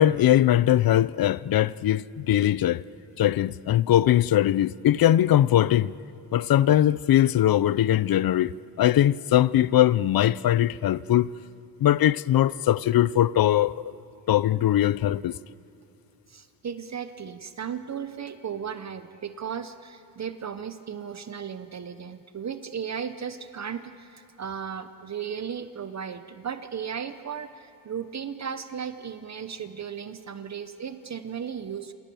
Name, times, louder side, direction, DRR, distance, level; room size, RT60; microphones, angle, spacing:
voice 1, 0.0-2.8 3.2-5.9 6.3-11.3 11.8-13.8 14.3-15.4, left 12 dB, 55° left, 0.6 m, -21 dB
voice 2, 16.3-31.9, right 7 dB, 40° right, 0.8 m, -35 dB
27.5 x 27.0 x 7.0 m
cardioid pair, 125°, 42 cm